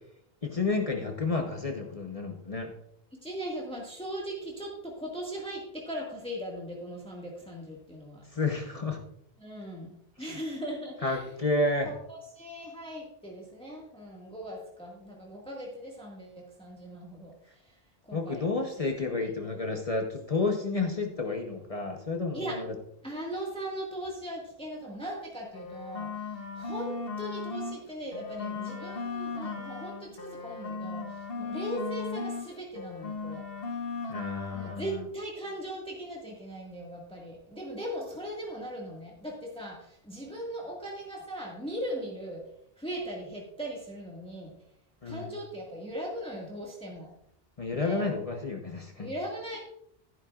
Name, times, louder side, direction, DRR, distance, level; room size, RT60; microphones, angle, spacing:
voice 1, 0.4-2.7 8.3-9.0 11.0-11.9 18.1-22.7 34.1-34.8 45.0-45.3 47.6-49.1, left 3 dB, 35° left, 2 dB, 1.0 m, -30 dB
voice 2, 3.2-8.2 9.4-11.3 11.8-18.9 19.6-19.7 22.3-22.7 23.0-33.4 34.5-42.4 42.8-44.5 45.0-47.1 47.7-48.1 49.0-49.6, equal, 5° left, -2 dB, 1.7 m, -39 dB
sound 1, 25.5-27.8 28.1-32.5 32.7-34.8, left 4 dB, 65° left, 1.3 m, -37 dB
12.0 x 11.0 x 2.4 m, 0.71 s
omnidirectional pair, 1.0 m